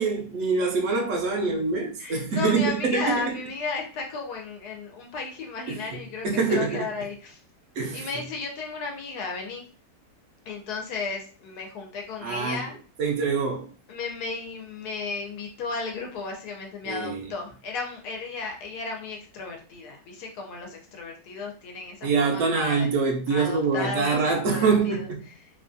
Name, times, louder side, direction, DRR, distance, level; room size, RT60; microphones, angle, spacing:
voice 1, 0.0-3.4 5.7-5.8 6.2-6.9 7.8-8.1 12.2-12.6 13.0-13.7 16.8-17.3 22.0-25.2, right 4 dB, 70° right, 0.8 m, -25 dB
voice 2, 2.0-7.4 7.9-9.6 10.5-12.7 13.9-22.9 23.3-25.1, left 4 dB, 85° left, 1.2 m, -34 dB
3.0 x 2.3 x 2.5 m
omnidirectional pair, 1.6 m